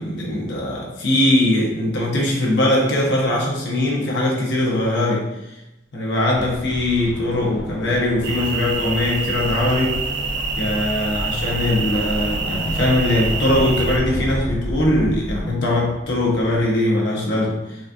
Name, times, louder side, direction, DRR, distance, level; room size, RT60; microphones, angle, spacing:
voice 1, 0.0-5.3 5.9-10.0 10.6-17.8, left 1 dB, 75° left, -3 dB, 0.9 m, -21 dB
sound 1, 6.3-16.7, equal, 5° right, 0.3 m, -31 dB
sound 2, 8.2-14.0, right 4 dB, 70° right, 0.4 m, -27 dB
4.0 x 2.3 x 2.6 m, 0.91 s
head